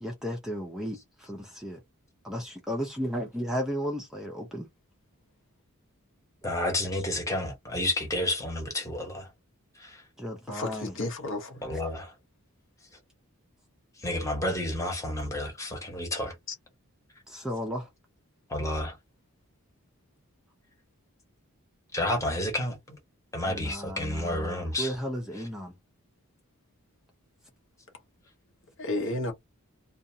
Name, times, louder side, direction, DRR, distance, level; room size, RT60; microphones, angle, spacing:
voice 1, 0.0-1.8 2.2-4.7 6.6-7.0 10.2-10.9 17.3-17.9 23.4-25.7, equal, ahead, 0.5 m, -34 dB
voice 2, 6.4-9.3 9.8-10.0 11.6-12.1 14.0-16.3 18.5-19.0 21.9-23.0 23.3-24.9, left 1 dB, 15° left, 1.0 m, -30 dB
voice 3, 10.5-11.8 16.5-16.6 28.8-29.3, left 2 dB, 60° left, 0.8 m, -32 dB
2.6 x 2.3 x 2.7 m
head